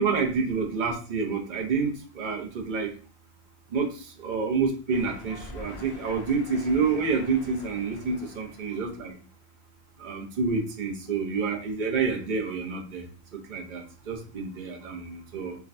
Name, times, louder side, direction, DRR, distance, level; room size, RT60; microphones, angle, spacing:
voice 1, 0.0-1.9 2.2-2.9 3.7-3.9 4.2-9.1 10.0-13.0 13.5-15.6, right 5 dB, 50° right, 2 dB, 0.8 m, -28 dB
sound 1, 4.9-9.2, left 3 dB, 60° left, 0.8 m, -44 dB
4.8 x 2.2 x 2.6 m, 0.39 s
omnidirectional pair, 1.1 m